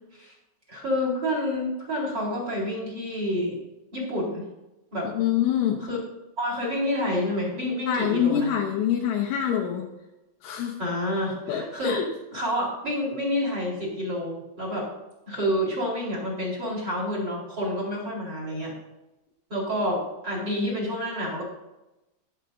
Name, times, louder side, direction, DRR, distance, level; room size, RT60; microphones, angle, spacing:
voice 1, 0.7-3.6 3.9-4.4 4.9-5.1 5.8-6.0 6.4-8.5 10.8-12.0 12.3-14.9 15.3-18.7 19.5-21.4, left 1 dB, 25° right, -2 dB, 3.8 m, -28 dB
voice 2, 5.1-5.8 7.9-9.9 10.4-10.8 11.5-12.1, left 9 dB, 75° left, 2 dB, 3.2 m, -25 dB
20.0 x 8.1 x 2.7 m, 0.98 s
omnidirectional pair, 6.0 m